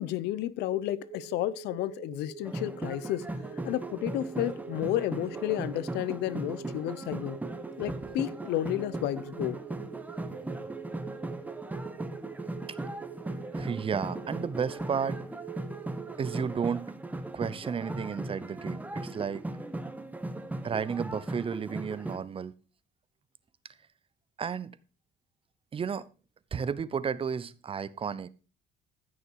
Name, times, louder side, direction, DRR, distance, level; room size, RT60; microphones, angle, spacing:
voice 1, 0.0-3.3 3.6-7.4 7.8-9.6, left 14 dB, 85° left, 0.8 m, -32 dB
sound 1, 0.6-16.6, right 8 dB, 65° right, 1.8 m, -46 dB
sound 2, 2.4-22.2, right 2 dB, 10° right, 1.3 m, -38 dB
voice 2, 13.5-15.2 16.2-16.9 17.3-19.5 20.6-22.5 24.4-24.8 25.7-26.1 26.5-28.3, right 6 dB, 35° right, 0.8 m, -32 dB
15.0 x 6.5 x 4.7 m
cardioid pair, 110°, 17 cm